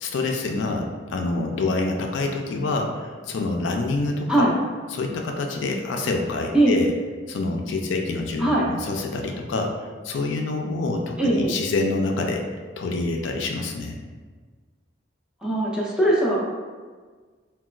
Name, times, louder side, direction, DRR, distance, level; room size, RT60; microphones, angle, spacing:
voice 1, 0.0-4.5 4.9-6.9 7.3-12.4 12.8-14.0, left 3 dB, 70° left, 2 dB, 0.3 m, -27 dB
voice 2, 11.2-11.6 15.4-16.4, right 1 dB, 5° right, -5 dB, 0.6 m, -20 dB
4.0 x 2.2 x 2.3 m, 1.4 s
head